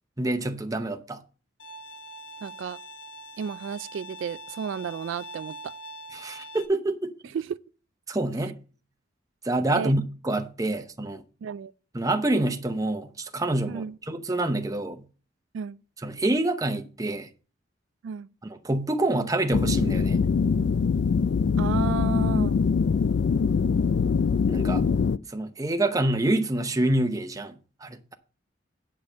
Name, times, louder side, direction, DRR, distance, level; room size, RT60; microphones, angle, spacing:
voice 1, 0.2-1.2 6.1-7.1 8.1-8.5 9.4-11.2 11.9-15.0 16.0-17.3 18.4-20.3 24.5-24.8 25.3-27.5 27.8-28.1, right 2 dB, 20° right, 0.7 m, -27 dB
Bowed string instrument, 1.6-6.7, right 1 dB, 80° left, 1.3 m, -43 dB
voice 2, 2.4-2.8 3.4-5.7 7.3-7.6 9.7-9.9 11.4-11.7 13.7-14.0 15.5-15.8 18.0-18.3 21.6-22.6, right 7 dB, 85° right, 0.3 m, -32 dB
sound 1, 19.5-25.2, left 5 dB, 60° left, 0.3 m, -23 dB
8.7 x 5.2 x 6.6 m
head